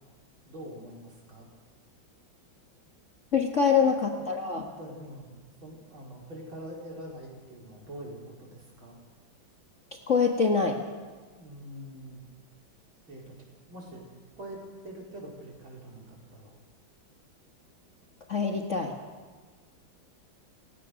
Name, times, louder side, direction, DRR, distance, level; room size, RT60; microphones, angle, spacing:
voice 1, 0.5-1.5 3.6-4.1 4.4-5.3 5.6-9.0 11.3-12.2 13.1-13.3 13.7-14.1 14.4-14.6 14.8-16.6, right 1 dB, 80° right, -2 dB, 5.2 m, -44 dB
voice 2, 3.3-4.7 10.1-10.8 18.3-18.9, left 5 dB, 40° left, 2 dB, 1.7 m, -24 dB
28.5 x 15.5 x 6.4 m, 1.4 s
omnidirectional pair, 2.2 m